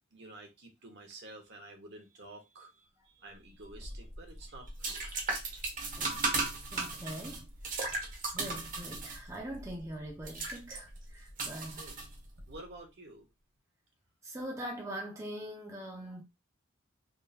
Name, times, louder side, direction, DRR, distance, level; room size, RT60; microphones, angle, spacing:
voice 1, 0.1-5.0 11.5-12.0 12.5-13.3, right 2 dB, 55° right, 1.2 m, -50 dB
sound 1, 3.7-12.5, right 3 dB, 40° right, 1.0 m, -37 dB
voice 2, 6.0-6.4 6.7-7.9 8.3-11.9 14.2-16.2, right 1 dB, 15° right, 0.7 m, -43 dB
3.7 x 3.0 x 2.7 m
head